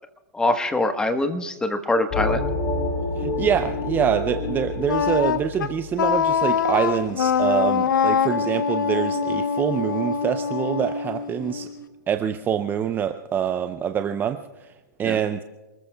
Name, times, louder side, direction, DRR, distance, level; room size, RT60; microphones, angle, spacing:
voice 1, 0.3-2.4 15.0-15.2, left 2 dB, 5° left, 7 dB, 1.3 m, -23 dB
sound 1, 2.1-7.4, left 2 dB, 35° left, 3.6 m, -28 dB
voice 2, 3.2-11.7 12.1-14.7 15.0-15.4, right 8 dB, 20° right, 8 dB, 0.6 m, -25 dB
Wind instrument woodwind instrument, 4.9-11.8, left 7 dB, 75° left, 0.7 m, -24 dB
sound 2, 8.4-12.0, right 6 dB, 70° right, 3.1 m, -39 dB
28.5 x 20.5 x 2.3 m, 1.2 s
hypercardioid pair, 125°, 11 cm